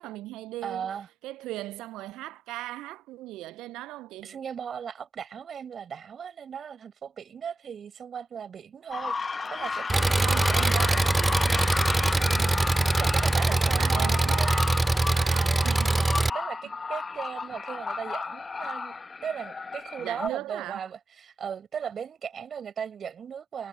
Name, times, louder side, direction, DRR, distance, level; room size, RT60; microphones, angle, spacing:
voice 1, 0.0-1.0 1.2-4.4 10.2-12.7 13.2-14.4 15.1-16.0 20.0-20.9, right 16 dB, 65° right, 1.0 m, -39 dB
voice 2, 0.6-1.1 4.2-10.7 13.0-23.7, right 7 dB, 50° right, 7.6 m, -37 dB
sound 1, 8.9-20.3, left 4 dB, 35° left, 1.6 m, -33 dB
Engine, 9.9-16.3, right 2 dB, 20° right, 0.3 m, -23 dB
figure-of-eight pair, 45°, 0 cm